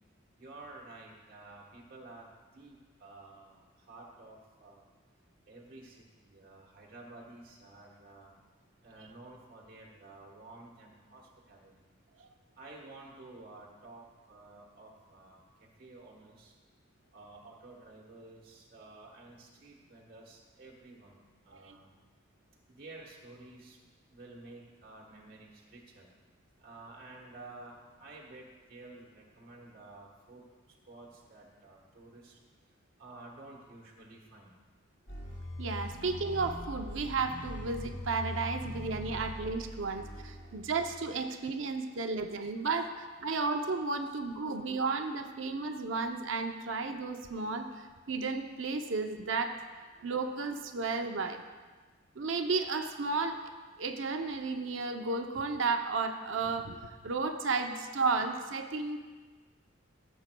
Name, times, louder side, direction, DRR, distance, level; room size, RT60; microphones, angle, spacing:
voice 1, 0.4-4.9 5.5-8.3 8.8-11.9 12.6-16.5 17.1-21.9 22.7-23.8 24.1-26.1 26.6-30.5 30.9-32.4 33.0-34.5 35.8-35.9 38.9-40.7 41.4-42.3 42.6-42.7 43.2-43.4 44.5-44.7, right 2 dB, 45° right, -3 dB, 1.3 m, -52 dB
sound 1, 35.1-41.3, equal, 40° left, 1.8 m, -42 dB
voice 2, 35.6-51.4 52.2-53.4 53.8-56.8 57.0-59.0, right 4 dB, 70° right, 6 dB, 0.6 m, -33 dB
15.5 x 7.1 x 2.2 m, 1.4 s
head